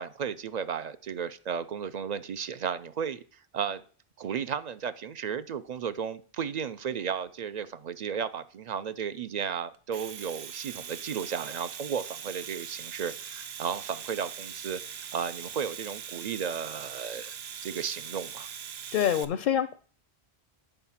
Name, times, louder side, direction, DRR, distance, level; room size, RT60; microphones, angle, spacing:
voice 1, 0.0-3.2 3.5-3.8 4.2-14.8 15.1-18.5, right 7 dB, 55° right, 13 dB, 0.5 m, -34 dB
Domestic sounds home sounds, 9.7-19.2, right 8 dB, 70° right, 0.9 m, -41 dB
voice 2, 18.9-19.8, left 10 dB, 60° left, 11 dB, 0.6 m, -26 dB
10.0 x 4.7 x 5.7 m, 0.42 s
omnidirectional pair, 1.1 m